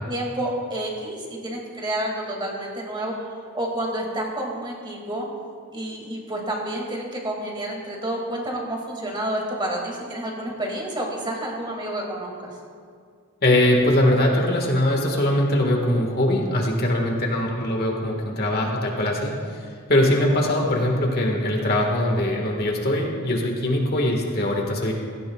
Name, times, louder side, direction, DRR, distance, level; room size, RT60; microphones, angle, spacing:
voice 1, 0.0-5.3 5.7-12.6, right 1 dB, 25° right, -1 dB, 2.3 m, -29 dB
voice 2, 13.4-24.9, left 1 dB, 45° left, 1 dB, 1.7 m, -22 dB
16.5 x 16.0 x 2.4 m, 2.2 s
head